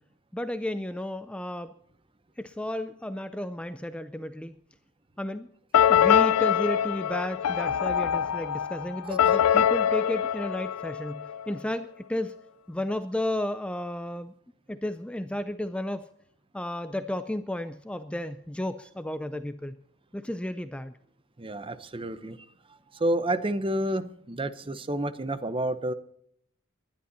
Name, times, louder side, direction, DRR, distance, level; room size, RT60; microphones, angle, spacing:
voice 1, 0.3-1.7 2.4-4.5 5.2-5.5 5.9-12.4 12.7-14.3 14.7-16.1 16.5-19.8 20.1-21.0, left 1 dB, 5° left, 11 dB, 0.5 m, -33 dB
sound 1, 5.7-11.5, left 9 dB, 85° left, 0.4 m, -24 dB
voice 2, 21.4-22.4 22.9-25.9, right 1 dB, 25° right, 13 dB, 0.8 m, -29 dB
20.0 x 11.5 x 4.1 m, 0.69 s
head